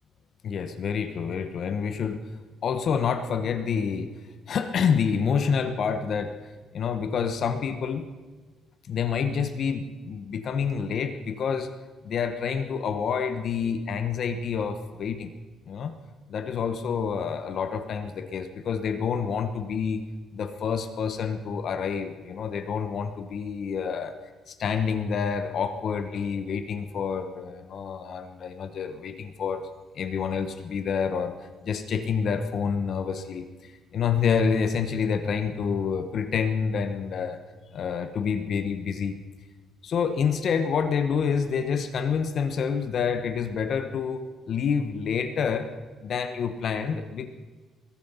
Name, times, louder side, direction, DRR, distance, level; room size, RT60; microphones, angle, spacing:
voice 1, 0.4-2.2 2.6-4.1 4.5-6.4 6.7-8.1 8.9-11.7 12.0-15.3 15.7-15.9 16.3-20.0 20.3-24.1 24.5-29.6 29.9-31.4 31.6-37.4 37.7-39.2 39.8-45.7 46.0-47.3, left 6 dB, 45° left, 9 dB, 1.0 m, -28 dB
21.5 x 8.5 x 5.6 m, 1.4 s
cardioid pair, 155°, 0 cm